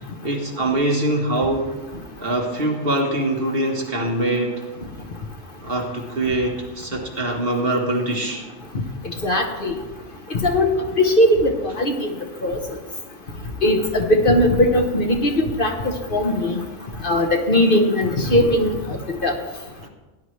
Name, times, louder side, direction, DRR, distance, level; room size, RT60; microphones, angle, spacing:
voice 1, 0.2-1.7 2.2-4.6 5.6-8.4 19.8-19.9, right 1 dB, 50° right, 1 dB, 1.7 m, -23 dB
voice 2, 9.0-9.7 10.3-10.7 11.0-12.1 12.4-12.6 13.6-16.6 17.0-19.3, left 1 dB, 45° left, 3 dB, 1.3 m, -19 dB
17.5 x 10.5 x 3.3 m, 1.2 s
omnidirectional pair, 1.3 m